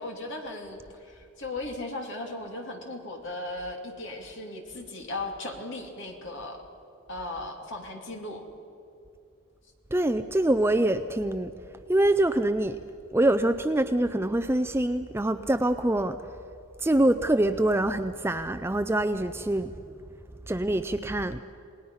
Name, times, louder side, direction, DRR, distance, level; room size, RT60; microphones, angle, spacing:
voice 1, 0.0-6.6 7.1-8.4, left 2 dB, 55° left, 2.9 m, -37 dB
voice 2, 9.9-11.5 11.9-12.8 13.1-16.2 16.8-19.7 20.5-21.4, right 1 dB, 10° right, 0.4 m, -25 dB
28.5 x 19.0 x 5.7 m
head